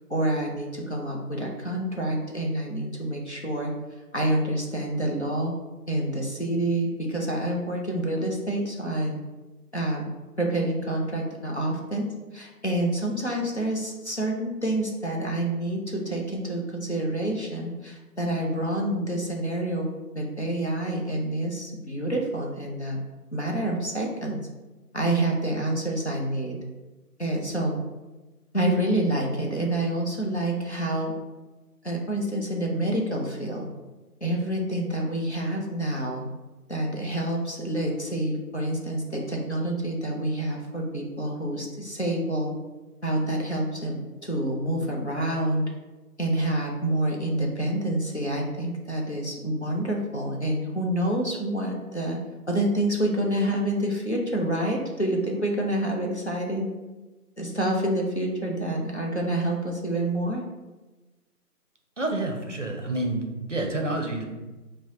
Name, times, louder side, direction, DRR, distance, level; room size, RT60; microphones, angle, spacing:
voice 1, 0.1-3.7 4.1-5.5 5.9-9.2 9.7-10.1 10.4-23.0 23.3-24.4 24.9-26.6 27.2-27.8 28.5-31.1 31.8-33.7 34.2-36.2 36.7-42.5 43.0-45.7 46.2-52.2 52.5-56.7 57.4-60.4, right 1 dB, 45° left, -1 dB, 0.5 m, -27 dB
voice 2, 62.0-63.2 63.5-64.2, right 2 dB, 50° right, 2 dB, 0.5 m, -28 dB
4.4 x 2.1 x 3.7 m, 1.1 s
figure-of-eight pair, 175°, 47 cm